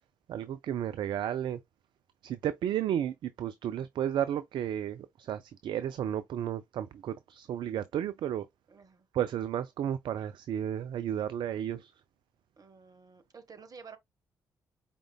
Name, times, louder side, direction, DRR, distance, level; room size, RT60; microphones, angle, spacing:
voice 1, 0.3-1.6 2.2-8.5 9.1-11.9, right 10 dB, 55° right, 0.4 m, -33 dB
voice 2, 8.7-9.1 12.6-14.0, right 5 dB, 40° right, 1.1 m, -51 dB
4.8 x 3.6 x 2.2 m
hypercardioid pair, 45°, 9 cm